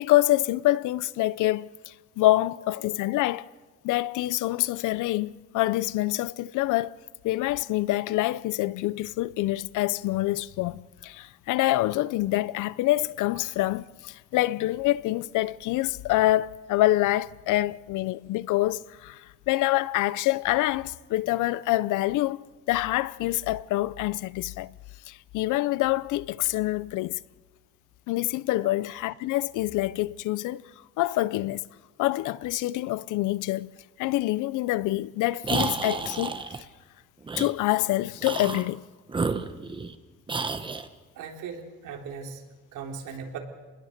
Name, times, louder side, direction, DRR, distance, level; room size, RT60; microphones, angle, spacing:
voice 1, 0.0-3.5 3.8-7.0 7.2-24.7 25.1-27.2 28.1-30.6 31.0-31.6 32.0-33.7 34.0-36.4 37.4-38.8, left 16 dB, 70° left, 0.7 m, -26 dB
sound 1, 35.4-36.6 37.3-37.5 38.2-38.7 39.1-40.0 40.3-40.9, right 4 dB, 15° right, 1.1 m, -30 dB
voice 2, 41.1-42.4 42.7-43.4, right 6 dB, 70° right, 3.9 m, -38 dB
28.5 x 21.0 x 6.7 m
cardioid pair, 155°, 31 cm